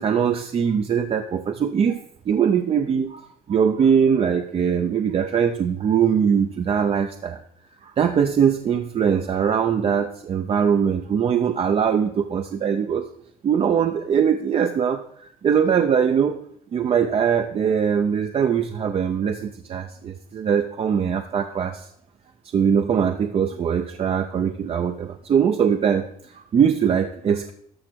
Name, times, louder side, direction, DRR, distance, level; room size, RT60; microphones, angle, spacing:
voice 1, 0.0-7.4 7.8-13.1 13.4-16.4 16.7-21.9 22.5-27.5, right 7 dB, 40° right, 7 dB, 0.6 m, -21 dB
12.5 x 6.2 x 4.5 m, 0.66 s
cardioid pair, 135°, 16 cm